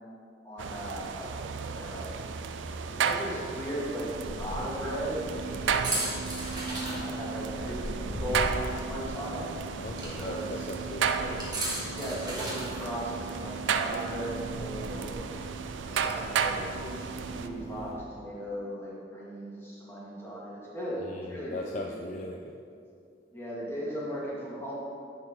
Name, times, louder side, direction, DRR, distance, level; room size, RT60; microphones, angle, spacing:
voice 1, 0.4-2.2 2.9-5.2 5.6-6.2 6.9-9.5 10.2-10.8 11.2-11.3 11.9-15.1 15.8-22.0 23.3-24.7, equal, 15° left, -7 dB, 1.9 m, -37 dB
sound 1, 0.6-17.5, right 6 dB, 85° right, 0.4 m, -34 dB
sound 2, 4.1-17.9, right 2 dB, 20° right, 1.7 m, -37 dB
voice 2, 9.8-11.1 21.0-22.6, left 2 dB, 40° left, 1 dB, 0.4 m, -39 dB
10.5 x 4.4 x 5.5 m, 2.4 s
head